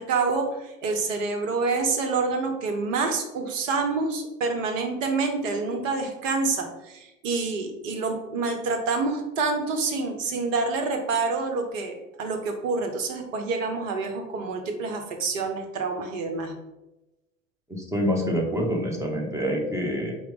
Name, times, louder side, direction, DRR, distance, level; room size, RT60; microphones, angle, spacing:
voice 1, 0.0-16.5, right 4 dB, 70° right, 4 dB, 0.8 m, -27 dB
voice 2, 17.7-20.1, equal, 5° right, 0 dB, 0.8 m, -26 dB
4.4 x 2.1 x 3.9 m, 0.99 s
figure-of-eight pair, 75°, 40 cm